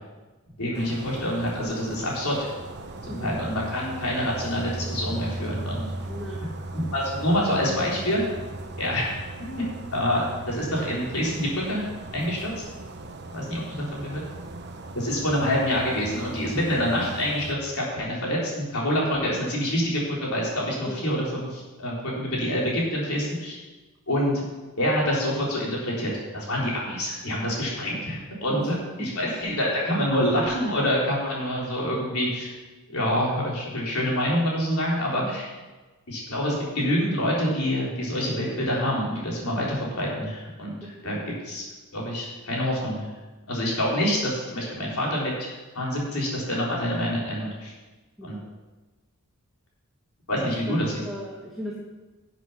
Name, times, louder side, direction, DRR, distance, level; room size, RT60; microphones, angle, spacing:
voice 1, 0.6-2.5 3.0-5.9 6.9-8.3 8.8-9.1 9.4-9.6 9.9-12.5 13.3-14.2 14.9-23.6 24.1-24.5 24.8-32.5 32.9-35.5 36.1-41.2 41.4-41.7 41.9-43.1 43.5-47.7 48.2-48.4 50.3-50.9, equal, 75° left, -4 dB, 4.0 m, -26 dB
sound 1, 0.7-17.5, right 2 dB, 50° right, 1.0 m, -37 dB
voice 2, 6.1-6.4 13.5-13.6 20.9-21.0 28.5-28.6 29.0-29.1 35.2-35.3 41.0-41.1 48.2-48.5 50.4-50.7 51.0-51.8, equal, ahead, -5 dB, 1.5 m, -37 dB
11.5 x 7.8 x 5.8 m, 1.2 s
head